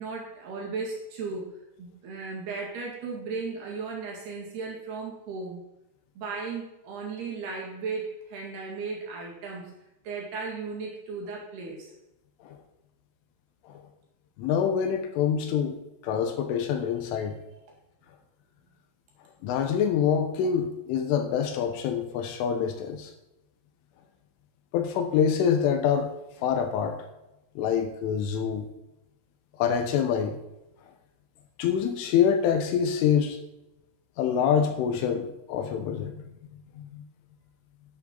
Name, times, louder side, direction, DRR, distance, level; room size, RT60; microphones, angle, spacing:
voice 1, 0.0-5.6 6.2-9.7 10.0-11.9, right 4 dB, 55° right, -2 dB, 3.8 m, -36 dB
voice 2, 14.4-15.8 16.0-17.4 19.4-23.1 24.7-26.1 26.4-27.0 27.6-28.6 29.6-30.4 31.6-33.4 34.2-36.1 36.7-37.0, left 7 dB, 75° left, 6 dB, 3.4 m, -26 dB
10.5 x 10.5 x 4.0 m, 0.93 s
omnidirectional pair, 5.9 m